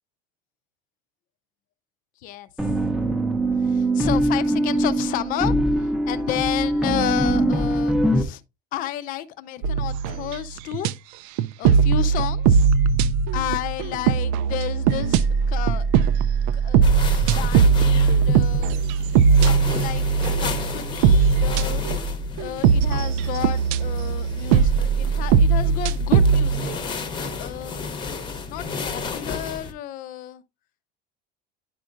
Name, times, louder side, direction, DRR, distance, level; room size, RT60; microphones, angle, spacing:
sound 1, 2.6-8.2, right 1 dB, 5° right, 0.7 m, -22 dB
voice 1, 3.6-8.4 8.7-10.9 11.6-12.7 13.3-16.0 16.5-18.8 19.3-20.0 20.4-21.8 22.4-26.7 27.3-27.9 28.5-30.4, left 12 dB, 45° left, 0.6 m, -32 dB
sound 2, 9.6-10.9 11.4-26.8, right 6 dB, 70° right, 0.5 m, -20 dB
sound 3, 16.8-29.7, left 4 dB, 25° left, 0.9 m, -33 dB
10.0 x 5.1 x 2.4 m
cardioid pair, 160°, 19 cm